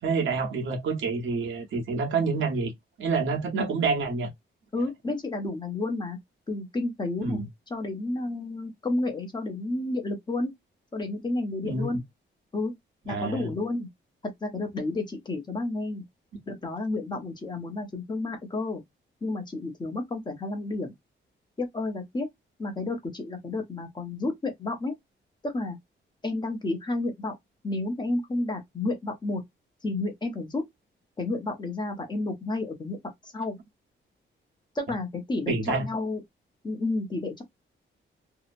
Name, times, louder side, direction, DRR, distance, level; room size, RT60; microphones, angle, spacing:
voice 1, 0.0-2.7 3.0-4.3 7.2-7.5 11.6-12.0 13.1-13.5 35.5-35.9, right 4 dB, 80° right, 1.0 m, -28 dB
voice 2, 4.7-6.2 6.5-10.5 10.9-12.0 12.5-12.7 13.1-13.9 14.4-16.0 16.5-18.8 19.2-20.9 21.6-22.3 22.6-24.9 25.4-25.8 26.2-27.3 27.6-29.4 29.8-30.6 31.2-33.0 33.3-33.6 34.7-36.2 36.6-37.4, left 2 dB, 20° left, 0.8 m, -31 dB
2.8 x 2.0 x 2.5 m
wide cardioid pair, 165°, 20 cm